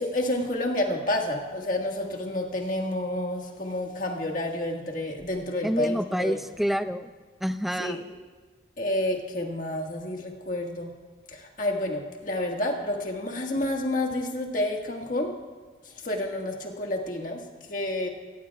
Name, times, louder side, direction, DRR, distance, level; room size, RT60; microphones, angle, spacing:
voice 1, 0.0-6.4 7.8-8.0 8.8-10.9 11.3-15.3 16.0-17.4 17.7-18.1, left 1 dB, 45° left, 1 dB, 1.7 m, -29 dB
voice 2, 5.6-7.1 7.4-8.0, equal, ahead, 10 dB, 0.4 m, -27 dB
23.0 x 16.5 x 2.4 m, 1.4 s
head